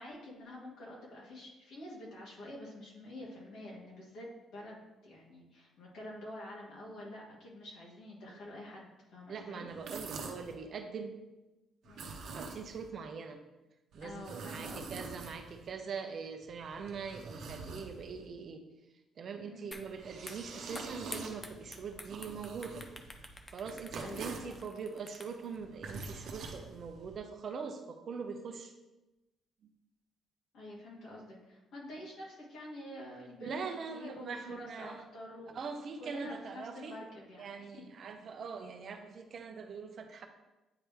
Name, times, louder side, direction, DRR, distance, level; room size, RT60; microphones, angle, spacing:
voice 1, 0.0-9.7 11.8-12.1 14.0-15.0 19.5-19.7 24.0-24.6 30.5-33.6 33.9-35.7 36.0-37.8, left 1 dB, 70° left, -5 dB, 2.0 m, -47 dB
voice 2, 9.3-11.2 12.2-13.4 13.9-18.6 19.2-22.9 23.5-28.7 33.4-35.0 35.5-36.9 37.4-40.3, right 5 dB, 45° right, 6 dB, 0.5 m, -42 dB
sound 1, 9.7-10.5 11.8-12.9 13.9-15.7 16.4-18.3 19.7-24.6 25.5-27.2, right 4 dB, 60° right, 0.8 m, -46 dB
sound 2, 19.7-19.9 20.2-25.6, left 2 dB, 15° left, 0.4 m, -49 dB
9.0 x 3.1 x 3.4 m, 1.0 s
cardioid pair, 155°, 0 cm